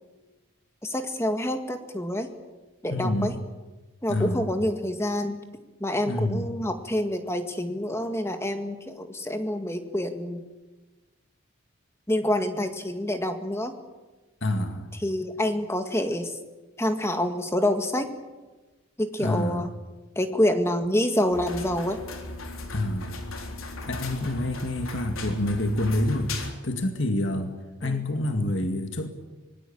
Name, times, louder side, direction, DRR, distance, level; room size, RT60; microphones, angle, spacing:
voice 1, 0.8-2.3 2.8-3.3 4.0-5.4 5.8-10.4 12.1-13.7 15.0-16.4 16.8-18.1 19.0-19.7 20.2-22.0 27.8-28.0, left 1 dB, 10° left, 6 dB, 2.0 m, -27 dB
voice 2, 2.9-3.4 4.1-4.5 6.1-6.5 14.4-14.9 19.2-19.7 22.7-23.2 23.8-27.6 27.8-29.1, left 1 dB, 60° left, 5 dB, 2.2 m, -27 dB
sound 1, 21.3-26.5, left 2 dB, 80° left, 3.8 m, -37 dB
24.5 x 20.5 x 8.7 m, 1.2 s
head